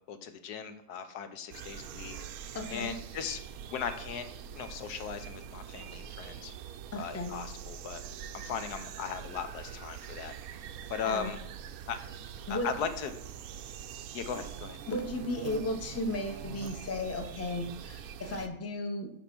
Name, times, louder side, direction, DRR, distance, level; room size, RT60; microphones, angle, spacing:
voice 1, 0.1-2.2 2.7-3.4 3.7-6.5 7.0-8.0 8.3-10.3 10.9-11.4 11.9-12.0 12.5-13.1 14.1-14.8, left 7 dB, 85° left, 9 dB, 1.4 m, -38 dB
sound 1, 1.5-18.5, right 8 dB, 75° right, 1.0 m, -44 dB
voice 2, 2.5-2.9 6.9-7.4 11.0-11.3 12.5-12.7 14.9-19.1, left 1 dB, 15° left, 5 dB, 0.6 m, -35 dB
10.5 x 3.7 x 6.0 m, 0.76 s
omnidirectional pair, 1.6 m